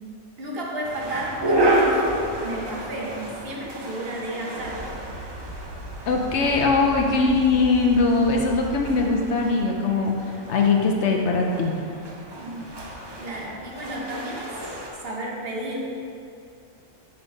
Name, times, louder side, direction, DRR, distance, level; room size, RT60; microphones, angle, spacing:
voice 1, 0.4-5.0 12.3-12.7 13.2-14.5 15.0-15.8, right 1 dB, 50° right, -2 dB, 1.0 m, -32 dB
sound 1, 0.8-14.9, right 1 dB, 30° right, 0.4 m, -30 dB
sound 2, 4.5-9.5 12.6-13.0, right 1 dB, 75° right, 1.7 m, -39 dB
voice 2, 6.1-10.1 10.5-11.7, left 3 dB, 65° left, 1 dB, 0.8 m, -21 dB
5.7 x 5.3 x 4.0 m, 2.5 s
omnidirectional pair, 1.4 m